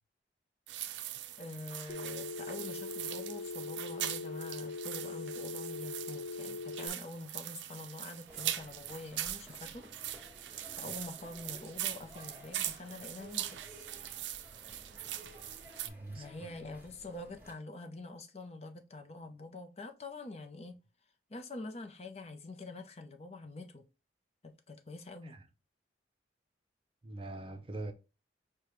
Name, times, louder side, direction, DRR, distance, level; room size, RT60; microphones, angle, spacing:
sound 1, 0.7-15.9, right 12 dB, 80° right, 0.4 m, -41 dB
voice 1, 1.4-9.8 10.8-13.5 16.1-20.8 21.3-23.8 24.4-25.4, left 2 dB, 35° left, 0.5 m, -46 dB
Telephone, 1.9-6.9, left 4 dB, 70° left, 0.8 m, -41 dB
sound 2, 8.3-17.5, equal, 10° right, 1.3 m, -55 dB
voice 2, 15.8-16.3 16.6-16.7 25.2-25.5 27.0-27.9, right 2 dB, 30° right, 0.5 m, -43 dB
6.6 x 2.2 x 3.0 m
head